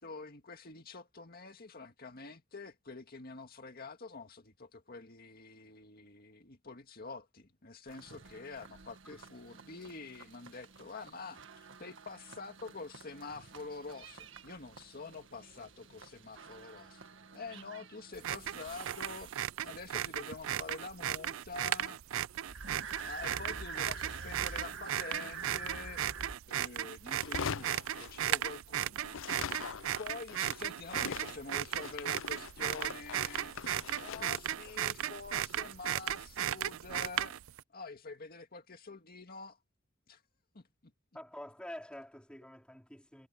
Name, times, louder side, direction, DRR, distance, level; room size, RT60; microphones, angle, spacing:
voice 1, 0.0-17.0 17.3-19.4 19.6-22.0 23.0-26.0 26.5-29.5 30.0-33.6 33.9-37.4 37.7-39.6 40.1-40.2 40.5-40.9, left 4 dB, 50° left, 2.0 m, -47 dB
sound 1, 7.9-19.8 22.5-26.4, right 4 dB, 65° right, 1.8 m, -48 dB
sound 2, 18.1-37.6, right 11 dB, 90° right, 0.4 m, -36 dB
sound 3, 27.1-28.7 29.0-36.2, left 6 dB, 75° left, 0.6 m, -43 dB
voice 2, 41.1-43.3, left 1 dB, 5° left, 4.2 m, -47 dB
head